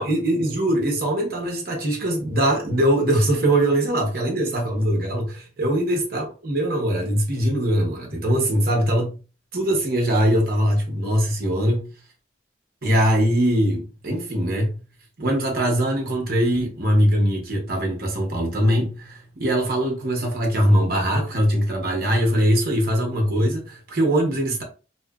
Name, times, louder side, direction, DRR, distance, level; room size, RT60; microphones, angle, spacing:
voice 1, 0.0-9.2 9.5-11.9 12.8-14.8 15.2-24.6, equal, 55° right, 0.9 m, -22 dB
2.7 x 2.4 x 2.3 m
head